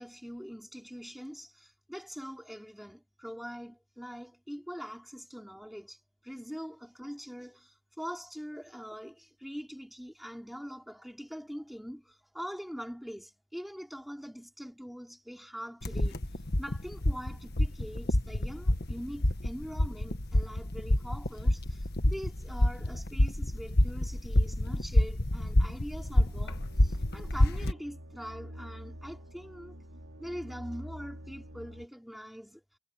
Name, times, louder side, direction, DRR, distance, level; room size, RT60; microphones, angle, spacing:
voice 1, 0.0-16.3 16.6-29.7 30.2-32.6, equal, ahead, 4.8 m, -43 dB
sound 1, 15.8-27.7, left 1 dB, 45° left, 1.6 m, -28 dB
sound 2, 25.9-31.9, equal, 65° right, 4.2 m, -47 dB
head